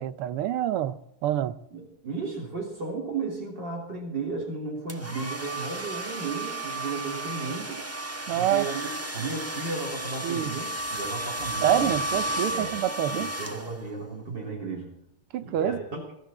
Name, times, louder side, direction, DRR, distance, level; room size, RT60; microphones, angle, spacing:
voice 1, 0.0-1.6 8.3-8.7 10.2-10.6 11.6-13.3 15.3-15.8, right 11 dB, 90° right, 1.7 m, -27 dB
voice 2, 1.7-7.8 8.4-12.0 12.5-12.7 13.1-14.9 15.4-16.0, right 4 dB, 55° right, 4.1 m, -34 dB
sound 1, 4.9-14.0, right 1 dB, 10° right, 1.1 m, -33 dB
22.5 x 13.5 x 4.3 m
omnidirectional pair, 2.4 m